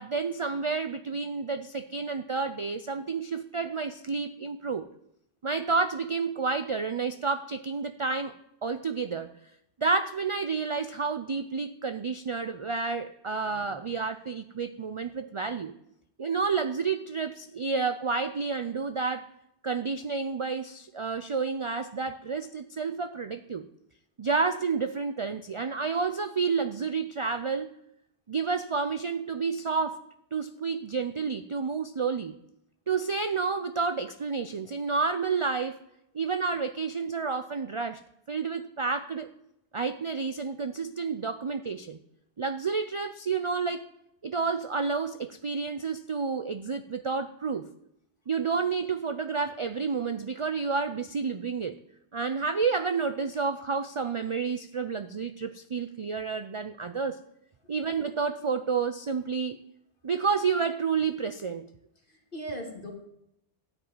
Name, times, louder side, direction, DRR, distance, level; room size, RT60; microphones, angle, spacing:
voice 1, 0.0-4.9 5.4-8.3 8.6-9.3 9.8-15.7 16.2-19.3 19.6-23.7 24.2-27.7 28.3-30.0 30.3-32.3 32.9-35.8 36.1-38.0 38.3-39.3 39.7-42.0 42.4-43.9 44.2-47.7 48.3-51.8 52.1-57.2 57.7-59.6 60.0-61.7, right 5 dB, 50° right, 10 dB, 0.3 m, -30 dB
voice 2, 13.5-13.8 62.1-62.9, right 1 dB, 50° left, 0 dB, 2.6 m, -39 dB
13.0 x 5.4 x 8.9 m, 0.80 s
omnidirectional pair, 1.2 m